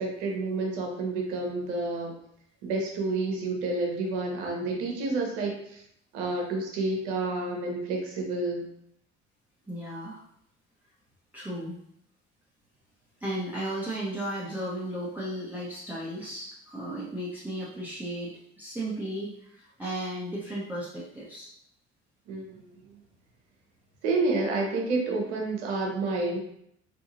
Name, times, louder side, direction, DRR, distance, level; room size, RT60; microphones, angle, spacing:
voice 1, 0.0-2.2 2.6-5.8 6.1-8.7 22.3-23.0 24.0-26.4, right 3 dB, 65° right, 0 dB, 1.0 m, -29 dB
voice 2, 9.7-10.2 11.3-11.8 13.2-21.5, right 1 dB, 5° right, -8 dB, 0.8 m, -35 dB
3.6 x 2.9 x 2.7 m, 0.71 s
figure-of-eight pair, 55°, 36 cm